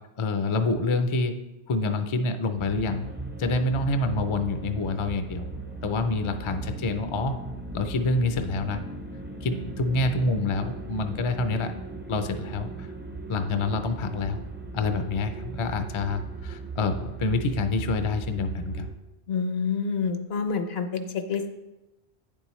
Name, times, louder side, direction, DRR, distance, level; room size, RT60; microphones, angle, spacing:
voice 1, 0.2-1.3 1.7-3.1 3.4-5.5 5.8-7.4 7.7-8.8 9.4-11.7 12.1-12.9 13.3-14.4 14.7-18.9, left 3 dB, 40° left, 8 dB, 0.4 m, -27 dB
sound 1, 2.6-18.9, right 3 dB, 15° right, 0.4 m, -38 dB
voice 2, 19.3-21.5, left 5 dB, 70° left, 7 dB, 1.0 m, -28 dB
9.2 x 7.0 x 3.1 m, 1.0 s
omnidirectional pair, 1.1 m